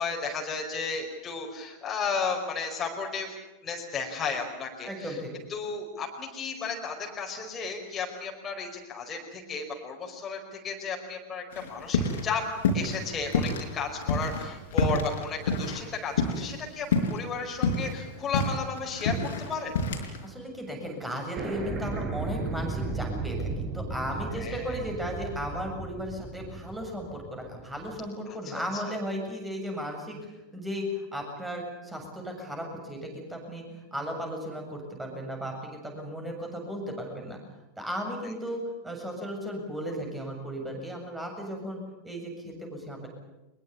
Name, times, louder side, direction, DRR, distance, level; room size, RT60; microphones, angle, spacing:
voice 1, 0.0-3.3 3.6-5.2 5.5-12.4 12.7-19.7 24.4-24.8 28.3-28.8, left 5 dB, 20° left, 0 dB, 5.0 m, -34 dB
voice 2, 4.9-5.3 20.2-37.4 37.8-43.1, equal, 5° right, 2 dB, 7.4 m, -35 dB
sound 1, 11.5-12.3 12.6-13.6 14.0-16.6 16.9-17.2 17.5-20.2, left 3 dB, 60° left, 4.5 m, -27 dB
sound 2, 13.1-15.7 16.2-16.3 17.8-18.2 18.4-19.9 20.2-20.3 20.4-20.5 20.9-21.0 21.4-28.1, right 3 dB, 25° right, 4.6 m, -36 dB
23.5 x 22.0 x 8.5 m, 1.0 s
figure-of-eight pair, 90°, 0 cm